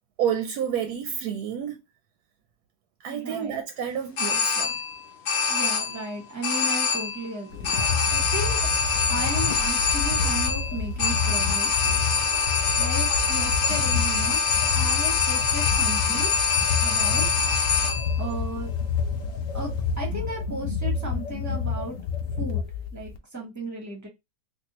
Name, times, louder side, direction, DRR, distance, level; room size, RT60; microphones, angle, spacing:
voice 1, 0.2-1.8 3.0-4.8, right 8 dB, 70° right, 1.0 m, -29 dB
voice 2, 3.1-3.6 5.5-7.8 8.1-8.6 9.1-12.0 12.8-14.4 14.8-16.3 16.8-17.5 18.2-18.7 19.5-22.0 22.4-22.6 22.9-24.1, right 1 dB, 15° right, 0.8 m, -35 dB
sound 1, 4.2-5.0 5.2-6.1 6.4-7.3 7.6-18.2, left 5 dB, 90° left, 0.4 m, -24 dB
sound 2, 7.5-23.2, left 5 dB, 70° left, 0.9 m, -29 dB
3.5 x 2.6 x 2.9 m
omnidirectional pair, 1.9 m